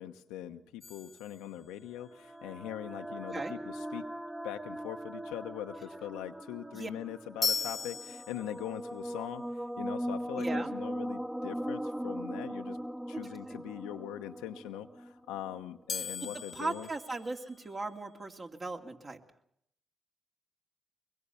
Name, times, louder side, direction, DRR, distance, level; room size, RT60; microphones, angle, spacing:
voice 1, 0.0-4.1 4.4-9.4 9.8-12.8 13.1-16.9, left 11 dB, 85° left, 7 dB, 1.0 m, -42 dB
sound 1, 0.8-2.1 7.4-8.9 15.9-18.0, left 5 dB, 50° left, 1.0 m, -38 dB
sound 2, 2.0-15.6, equal, 15° right, 1.3 m, -40 dB
voice 2, 10.4-10.7 13.1-13.2 13.5-13.6 16.2-19.2, right 3 dB, 40° right, 2 dB, 2.7 m, -38 dB
23.5 x 21.5 x 7.0 m, 0.74 s
hypercardioid pair, 40°, 0 cm